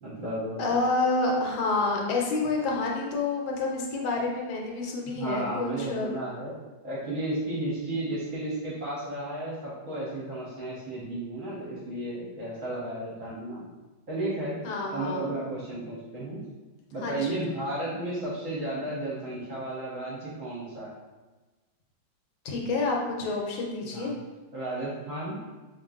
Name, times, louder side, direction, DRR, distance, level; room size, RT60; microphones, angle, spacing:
voice 1, 0.0-0.7 5.2-6.5 6.8-13.6 14.1-14.6 14.9-16.4 16.9-20.9 23.8-24.2 24.5-25.4, right 1 dB, 55° right, -7 dB, 1.0 m, -33 dB
voice 2, 0.6-6.1 14.6-15.3 17.0-17.5 22.4-24.1, left 3 dB, 80° left, 0 dB, 1.4 m, -28 dB
4.3 x 2.9 x 2.4 m, 1.2 s
omnidirectional pair, 2.1 m